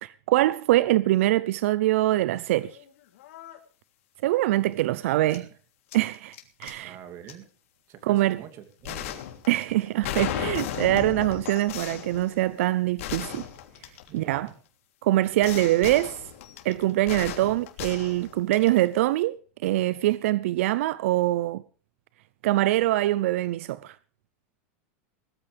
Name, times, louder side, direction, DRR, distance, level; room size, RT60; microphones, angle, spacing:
voice 1, 0.0-2.8 4.2-5.5 5.9-7.0 8.0-8.4 9.5-13.5 14.1-14.5 15.0-16.2 16.6-19.4 19.6-21.6 22.4-24.0, right 16 dB, 75° right, 0.6 m, -24 dB
sound 1, 2.6-2.8 3.2-3.6 5.3-5.4 5.9-6.7 7.3-7.4 8.8-14.5 15.4-18.9, left 11 dB, 75° left, 3.3 m, -36 dB
voice 2, 4.8-5.5 6.8-7.5 7.9-9.2 14.1-14.6, right 9 dB, 40° right, 2.8 m, -45 dB
20.0 x 14.5 x 3.5 m
supercardioid pair, 150°, 7 cm